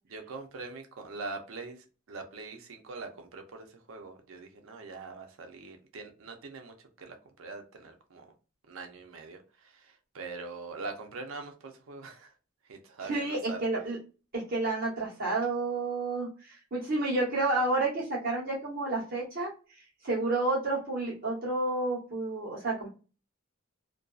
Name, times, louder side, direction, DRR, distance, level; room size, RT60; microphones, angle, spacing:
voice 1, 0.1-8.3 8.7-12.3 12.7-13.6, right 3 dB, 85° right, 0.6 m, -43 dB
voice 2, 13.0-14.0 14.3-19.5 20.0-22.9, right 2 dB, 45° right, 1.1 m, -30 dB
2.5 x 2.3 x 2.3 m
head